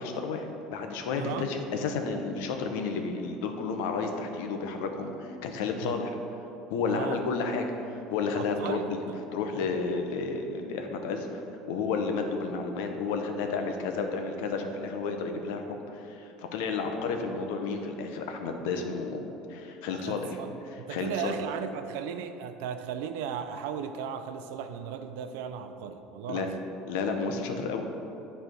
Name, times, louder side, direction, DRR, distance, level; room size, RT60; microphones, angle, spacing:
voice 1, 0.0-6.2 6.7-7.7 8.1-9.0 9.3-20.3 20.9-21.3 26.3-26.5 26.9-27.9, left 4 dB, 85° left, 4 dB, 0.8 m, -31 dB
voice 2, 1.2-1.5 5.8-5.9 6.9-7.2 8.3-9.8 19.9-26.6, right 8 dB, 85° right, 9 dB, 0.5 m, -37 dB
8.9 x 3.4 x 6.1 m, 2.9 s
cardioid pair, 130°, 0 cm